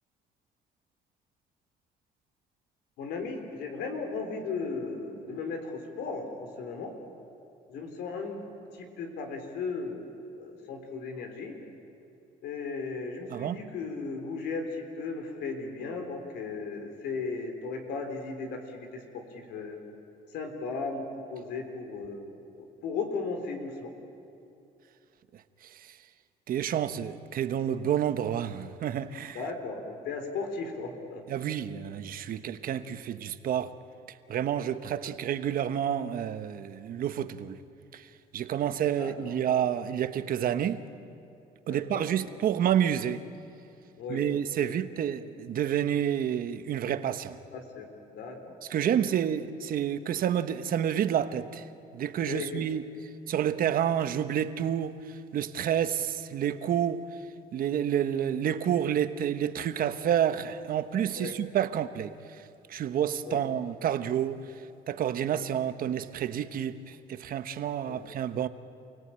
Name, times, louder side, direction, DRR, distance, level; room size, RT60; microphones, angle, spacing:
voice 1, 3.0-7.0 7.7-8.4 8.7-10.0 10.4-11.6 12.4-19.8 20.3-22.3 22.8-23.9 29.3-31.2 39.0-39.4 41.7-42.0 44.0-44.3 44.6-44.7 47.5-47.9 48.1-48.6 48.9-49.1 52.3-52.6 61.2-61.3 63.3-63.4 65.4-65.5 67.9-68.1, left 4 dB, 80° left, 3.8 m, -36 dB
voice 2, 26.5-29.4 31.3-33.7 34.3-37.5 37.9-38.0 38.3-40.8 41.7-43.2 44.1-47.4 48.7-51.6 51.9-52.8 53.3-54.9 55.3-57.0 57.5-62.2 62.7-64.4 64.9-68.5, right 9 dB, 55° right, 1.1 m, -29 dB
28.5 x 17.5 x 8.9 m
cardioid pair, 110°, 17 cm